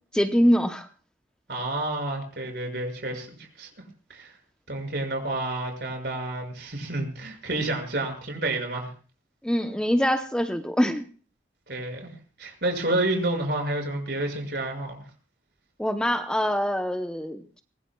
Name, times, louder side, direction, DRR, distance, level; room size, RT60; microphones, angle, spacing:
voice 1, 0.1-0.9 9.4-11.0 15.8-17.6, equal, 5° left, 6 dB, 0.8 m, -24 dB
voice 2, 1.5-3.3 3.6-3.7 4.1-4.3 4.7-8.9 11.7-12.1 12.4-15.0, right 2 dB, 60° right, 3 dB, 6.5 m, -29 dB
24.5 x 20.0 x 2.4 m, 0.39 s
head